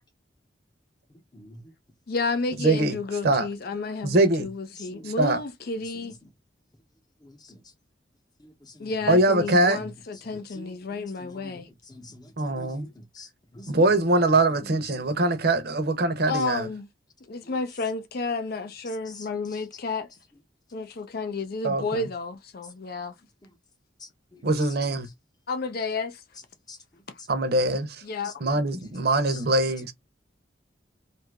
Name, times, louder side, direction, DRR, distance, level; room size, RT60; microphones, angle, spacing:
voice 1, 2.1-6.1 8.8-11.7 16.3-16.9 17.3-20.1 20.7-23.1 25.5-26.2 28.0-28.3, left 3 dB, 55° left, 0.5 m, -31 dB
voice 2, 2.6-3.0 3.2-3.5 4.0-4.5 5.0-5.4 9.1-9.8 12.4-12.9 13.7-16.7 21.6-22.1 24.4-25.1 27.3-28.0 28.4-29.9, right 2 dB, 60° right, 0.7 m, -23 dB
voice 3, 7.3-7.6 8.8-8.9 10.6-11.6 11.9-12.9 13.2-13.3 13.5-13.7 26.7-26.8, left 1 dB, 20° left, 0.8 m, -46 dB
2.7 x 2.5 x 3.4 m
head